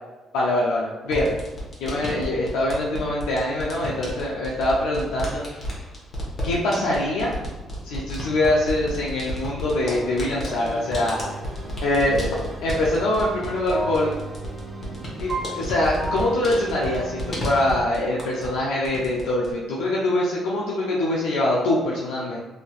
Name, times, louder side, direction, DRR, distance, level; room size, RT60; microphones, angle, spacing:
voice 1, 0.3-1.3 1.8-5.4 6.4-7.3 7.8-11.2 11.8-14.1 15.2-22.4, left 1 dB, 85° left, -5 dB, 0.4 m, -24 dB
sound 1, 1.1-18.6 18.8-19.5, equal, 45° left, 1.1 m, -33 dB
sound 2, 9.8-17.9, right 2 dB, 25° right, 1.1 m, -35 dB
3.2 x 2.7 x 2.3 m, 1.2 s
supercardioid pair, 60°, 0 cm